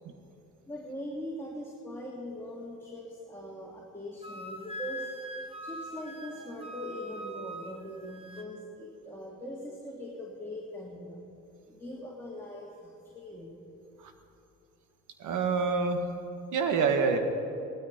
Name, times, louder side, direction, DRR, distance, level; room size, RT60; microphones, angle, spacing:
voice 1, 0.7-5.1 5.6-11.2 11.7-13.6, equal, 10° left, -3 dB, 2.3 m, -41 dB
Wind instrument woodwind instrument, 4.2-8.5, left 1 dB, 20° right, 1.4 m, -42 dB
voice 2, 15.2-16.0 16.5-17.2, right 5 dB, 80° right, 6 dB, 1.6 m, -26 dB
17.5 x 13.0 x 5.2 m, 2.7 s
cardioid pair, 90°, 30 cm